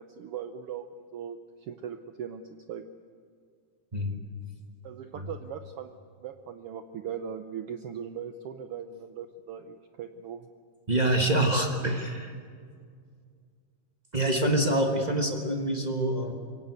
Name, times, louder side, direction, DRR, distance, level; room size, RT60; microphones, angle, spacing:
voice 1, 0.0-2.4 2.7-2.8 4.8-5.9 6.2-10.5, right 8 dB, 80° right, 8 dB, 1.3 m, -39 dB
voice 2, 10.9-12.3 14.1-16.3, right 1 dB, 30° right, 2 dB, 0.8 m, -26 dB
23.5 x 17.0 x 8.3 m, 2.1 s
omnidirectional pair, 3.5 m